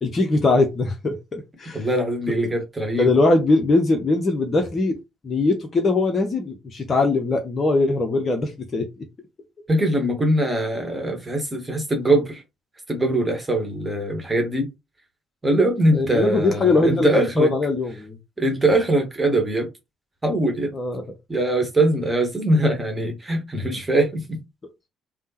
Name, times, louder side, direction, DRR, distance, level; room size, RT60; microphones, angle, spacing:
voice 1, 0.0-1.8 3.0-4.9 5.2-8.9 15.9-18.2 20.7-21.0, left 3 dB, 35° left, 0.6 m, -21 dB
voice 2, 1.7-3.1 9.7-12.4 12.9-14.7 15.4-17.5 18.4-19.7 20.2-20.7 21.3-24.2, right 1 dB, 20° right, 1.2 m, -22 dB
3.4 x 2.1 x 2.9 m
figure-of-eight pair, 45°, 0 cm